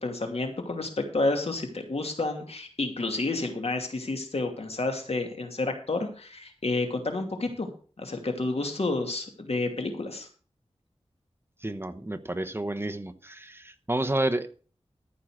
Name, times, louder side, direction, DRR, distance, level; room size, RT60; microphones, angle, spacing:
voice 1, 0.0-7.7 8.0-10.3, left 2 dB, 70° left, 4 dB, 2.6 m, -30 dB
voice 2, 11.6-14.5, right 1 dB, 20° right, 9 dB, 1.0 m, -30 dB
14.0 x 5.7 x 6.4 m, 0.39 s
wide cardioid pair, 65°, 11 cm